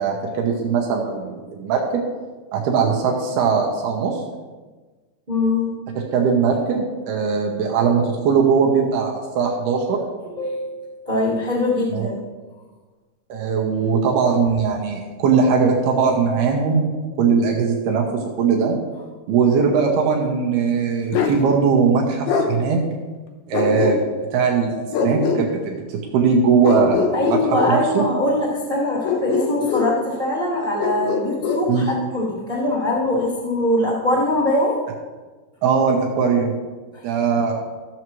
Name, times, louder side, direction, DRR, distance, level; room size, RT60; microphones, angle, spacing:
voice 1, 0.0-2.0 2.5-4.2 6.1-10.0 11.9-12.1 13.3-18.7 19.3-22.8 23.5-24.0 24.3-24.8 25.0-27.4 27.7-28.1 31.7-31.9 35.6-36.5 37.0-37.5, right 5 dB, 75° right, 0 dB, 2.9 m, -20 dB
voice 2, 5.3-5.7 10.3-12.1 27.1-34.8 36.9-37.2, left 1 dB, 55° right, -7 dB, 0.5 m, -22 dB
Bark, 21.1-21.4 22.3-22.5 23.5-24.3 24.9-25.4 26.6-27.8 29.0-29.9 30.8-31.7, left 5 dB, 75° left, 2.7 m, -22 dB
15.0 x 7.2 x 3.1 m, 1.3 s
omnidirectional pair, 4.8 m